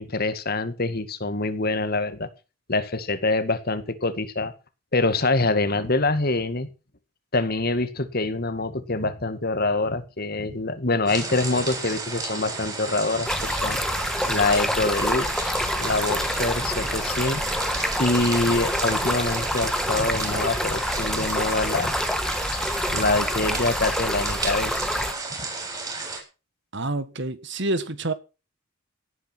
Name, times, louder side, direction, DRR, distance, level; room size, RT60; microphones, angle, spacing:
voice 1, 0.0-2.3 2.7-4.5 4.9-6.7 7.3-13.8 14.3-17.4 18.0-21.9 22.5-24.7, left 2 dB, 45° left, 2.0 m, -25 dB
sound 1, 11.1-26.2, right 3 dB, 20° right, 7.3 m, -33 dB
Stream, 13.3-25.1, left 1 dB, 5° left, 1.3 m, -27 dB
voice 2, 26.7-28.1, right 2 dB, 60° right, 1.6 m, -28 dB
17.5 x 9.4 x 6.1 m
head